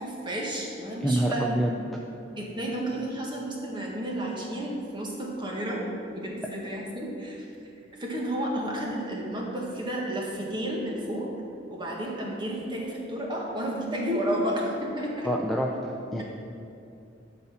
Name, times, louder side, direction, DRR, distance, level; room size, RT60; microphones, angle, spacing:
voice 1, 0.0-1.6 2.4-5.9 6.1-7.4 8.0-11.3 11.7-15.3 16.1-16.2, right 1 dB, 25° right, -2 dB, 1.7 m, -31 dB
voice 2, 1.0-1.7 6.4-6.5 15.2-16.2, equal, ahead, -1 dB, 0.5 m, -27 dB
12.0 x 4.2 x 7.1 m, 2.7 s
head